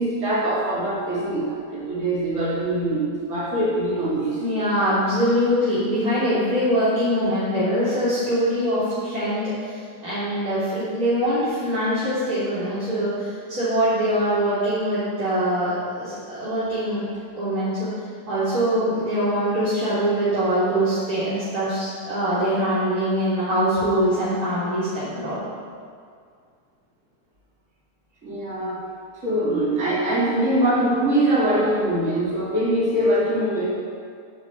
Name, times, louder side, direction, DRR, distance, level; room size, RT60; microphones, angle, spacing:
voice 1, 0.0-4.4 28.2-28.8 29.2-33.7, right 1 dB, 45° right, -7 dB, 3.3 m, -23 dB
voice 2, 4.4-9.4 10.0-17.0 17.4-17.9 18.3-25.4, equal, 65° right, -13 dB, 4.0 m, -23 dB
14.5 x 6.5 x 8.3 m, 2.2 s
omnidirectional pair, 1.7 m